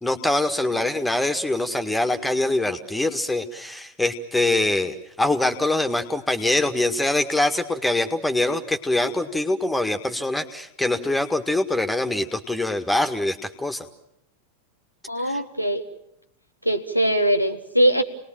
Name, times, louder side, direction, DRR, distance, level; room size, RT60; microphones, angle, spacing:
voice 1, 0.0-13.9, left 2 dB, 5° left, 7 dB, 1.8 m, -24 dB
voice 2, 15.1-15.8 16.7-18.0, right 1 dB, 90° right, 9 dB, 1.8 m, -21 dB
28.5 x 20.0 x 7.5 m, 0.78 s
figure-of-eight pair, 90°, 0 cm